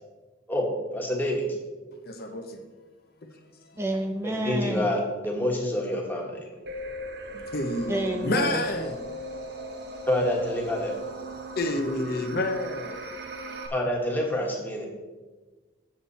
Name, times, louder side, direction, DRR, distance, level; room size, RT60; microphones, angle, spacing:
voice 1, 0.5-1.4 4.2-6.4 10.1-10.9 13.7-14.8, left 1 dB, 10° left, 1.5 m, -27 dB
voice 2, 2.1-2.6 3.6-3.8 7.3-9.0 11.6-12.9, left 1 dB, 55° left, 0.8 m, -29 dB
voice 3, 3.8-4.9 7.9-8.8, right 1 dB, 15° right, 0.4 m, -29 dB
sound 1, 6.7-13.7, equal, 55° right, 0.9 m, -38 dB
7.3 x 7.3 x 4.2 m
head